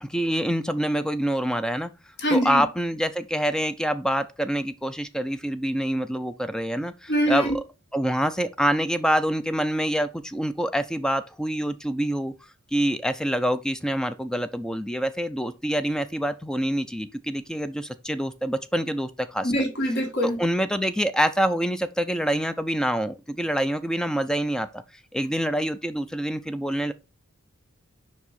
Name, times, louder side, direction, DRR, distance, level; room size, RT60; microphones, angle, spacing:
voice 1, 0.0-1.9 2.3-7.6 7.9-12.3 12.7-19.5 20.2-24.8 25.1-26.9, equal, 5° left, 0.3 m, -26 dB
voice 2, 2.2-2.6 7.1-7.5 19.4-20.4, equal, 50° left, 1.8 m, -23 dB
5.5 x 4.7 x 4.2 m
head